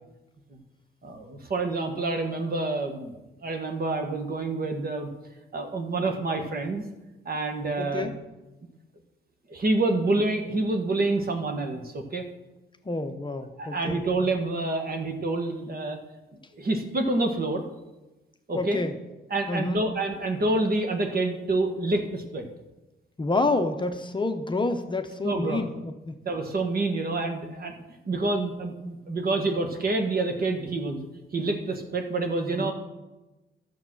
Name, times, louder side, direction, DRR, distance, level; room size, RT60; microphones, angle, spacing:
voice 1, 1.0-5.1 5.5-6.8 7.2-8.1 9.5-12.2 13.6-16.0 16.5-17.6 18.5-18.8 19.3-22.5 25.2-25.6 26.2-27.7 28.0-31.1 31.3-32.7, right 2 dB, 50° right, 4 dB, 1.5 m, -27 dB
voice 2, 7.8-8.1 12.8-14.0 18.5-19.0 19.5-19.8 23.2-26.1 32.6-32.7, left 2 dB, 25° left, 7 dB, 0.7 m, -28 dB
11.5 x 7.0 x 6.2 m, 1.1 s
cardioid pair, 100°, 20 cm